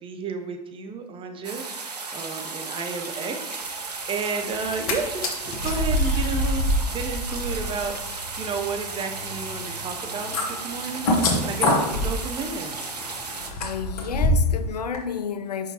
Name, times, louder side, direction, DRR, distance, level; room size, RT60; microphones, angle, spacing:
voice 1, 0.0-12.8, right 5 dB, 25° right, 0.8 m, -32 dB
sound 1, 1.4-13.5, right 4 dB, 90° right, 0.7 m, -34 dB
sound 2, 4.6-4.9 5.2-14.6 14.9-15.0, left 1 dB, 65° left, 1.2 m, -26 dB
voice 2, 13.6-15.7, left 7 dB, 85° left, 0.4 m, -31 dB
6.2 x 5.4 x 2.8 m
figure-of-eight pair, 90°, 20 cm